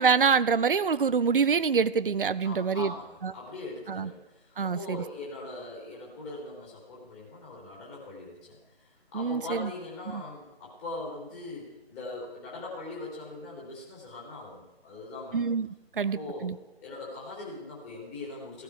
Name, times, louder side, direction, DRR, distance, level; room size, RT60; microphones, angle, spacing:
voice 1, 0.0-2.9 3.2-3.3 3.9-4.1 4.6-5.0 9.1-9.7 10.1-10.2 15.3-15.7 16.0-16.6, right 6 dB, 60° right, 16 dB, 0.6 m, -25 dB
voice 2, 2.4-15.4 16.0-16.5 16.8-18.6, left 2 dB, 15° left, -4 dB, 3.8 m, -41 dB
17.5 x 12.5 x 4.9 m, 0.97 s
figure-of-eight pair, 150°, 31 cm